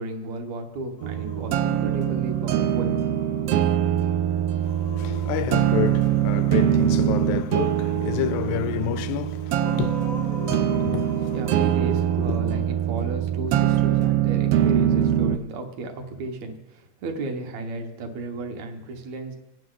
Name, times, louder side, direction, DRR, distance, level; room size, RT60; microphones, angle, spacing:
voice 1, 0.0-3.0 11.3-19.4, right 2 dB, 70° right, 2.7 m, -33 dB
Singing, 1.0-12.6, left 3 dB, 70° left, 0.8 m, -40 dB
sound 1, 1.0-15.4, right 11 dB, 90° right, 1.3 m, -23 dB
voice 2, 4.6-11.4 12.3-12.4, left 13 dB, 85° left, 2.0 m, -30 dB
26.5 x 9.2 x 3.9 m
omnidirectional pair, 3.3 m